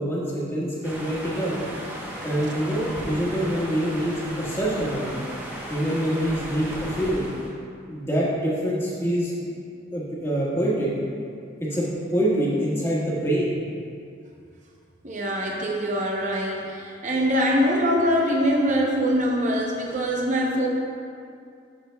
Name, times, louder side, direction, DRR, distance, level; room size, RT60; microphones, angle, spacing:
voice 1, 0.0-1.5 2.2-5.2 5.7-6.7 6.9-7.3 7.9-9.3 9.9-10.9 11.7-13.5, right 1 dB, 15° left, -7 dB, 1.5 m, -25 dB
sound 1, 0.8-7.5, right 1 dB, 10° right, 0.9 m, -35 dB
voice 2, 15.0-20.7, equal, 40° right, -1 dB, 0.7 m, -23 dB
11.5 x 6.6 x 2.3 m, 2.4 s
head